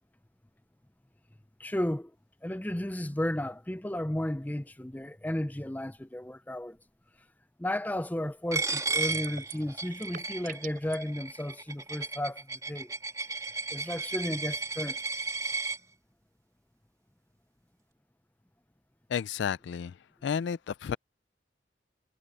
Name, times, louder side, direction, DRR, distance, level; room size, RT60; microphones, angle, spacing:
voice 1, 1.6-2.1 2.4-6.8 7.6-12.9 13.7-15.0, left 1 dB, 10° left, 0.5 m, -33 dB
Coin (dropping), 8.5-15.8, right 4 dB, 20° right, 2.7 m, -34 dB
sound 1, 9.0-9.7 9.9-11.0, right 8 dB, 50° right, 4.3 m, -42 dB
voice 2, 19.1-19.9 20.2-21.0, left 7 dB, 75° left, 0.3 m, -31 dB
head